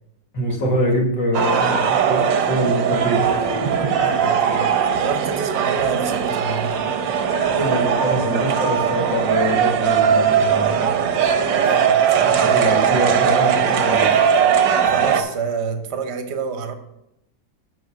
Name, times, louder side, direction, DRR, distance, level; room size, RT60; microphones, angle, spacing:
voice 1, 0.3-4.2 7.3-11.0 12.2-14.1, equal, 80° left, -1 dB, 2.5 m, -24 dB
sound 1, 1.3-15.2, right 7 dB, 85° right, 1.5 m, -19 dB
voice 2, 4.2-4.7 4.9-6.8 11.6-12.0 12.9-13.2 14.9-16.7, right 5 dB, 45° right, 7 dB, 0.9 m, -28 dB
7.8 x 4.9 x 6.0 m, 0.83 s
omnidirectional pair, 2.0 m